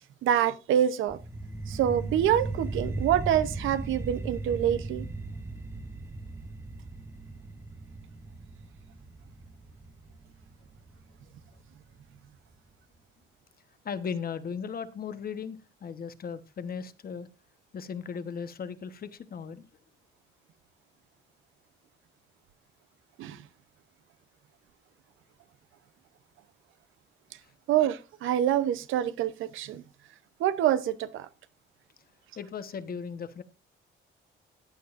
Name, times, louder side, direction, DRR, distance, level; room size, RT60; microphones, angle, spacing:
voice 1, 0.2-1.2 1.7-5.1 23.2-23.4 27.7-29.8 30.4-31.3, right 10 dB, 85° right, 0.8 m, -26 dB
sound 1, 1.1-12.1, right 2 dB, 15° right, 0.9 m, -38 dB
voice 2, 13.8-17.3 17.7-19.7 27.4-27.5 32.4-33.4, left 6 dB, 50° left, 1.1 m, -37 dB
14.5 x 9.4 x 2.5 m
cardioid pair, 90°, 20 cm